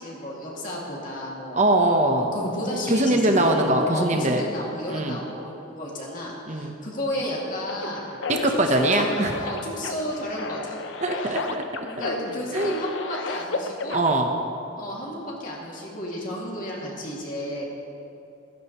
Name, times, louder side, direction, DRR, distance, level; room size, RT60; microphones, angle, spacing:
voice 1, 0.0-1.7 2.2-3.6 3.9-8.1 8.7-9.0 9.4-10.8 11.8-14.0 14.8-17.7, equal, 40° left, -3 dB, 2.3 m, -32 dB
voice 2, 1.5-2.3 2.9-4.4 4.9-5.2 6.5-6.7 8.3-9.3 11.0-12.1 12.5-12.8 13.9-14.3, right 1 dB, 35° right, 3 dB, 0.9 m, -22 dB
sound 1, 7.7-14.2, left 3 dB, 65° left, 0.6 m, -33 dB
15.0 x 14.5 x 3.1 m, 2.8 s
head